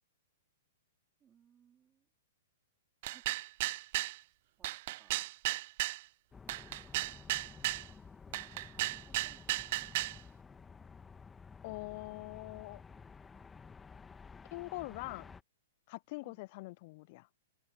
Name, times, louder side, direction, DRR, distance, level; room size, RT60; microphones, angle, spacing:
voice 1, 1.2-2.1 3.1-3.2 4.6-5.2 7.0-7.8 8.3-10.2 10.5-10.6 16.2-16.4, right 8 dB, 20° right, 2.9 m, -67 dB
sound 1, 3.0-4.2 4.6-6.0 6.5-7.9 8.3-10.2, right 18 dB, 50° right, 0.3 m, -35 dB
sound 2, 6.3-15.4, left 5 dB, 15° left, 1.6 m, -53 dB
voice 2, 11.6-12.8 14.5-15.4 15.9-17.3, left 24 dB, 45° left, 0.4 m, -43 dB
open air
hypercardioid pair, 115°, 0 cm